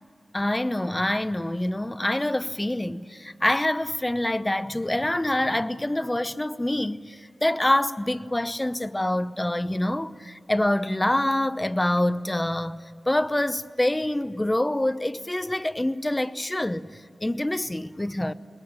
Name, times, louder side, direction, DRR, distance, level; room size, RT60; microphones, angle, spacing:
voice 1, 0.3-12.8 13.1-18.3, left 1 dB, 15° left, 0.8 m, -26 dB
28.0 x 21.0 x 9.1 m
cardioid pair, 60°, 0 cm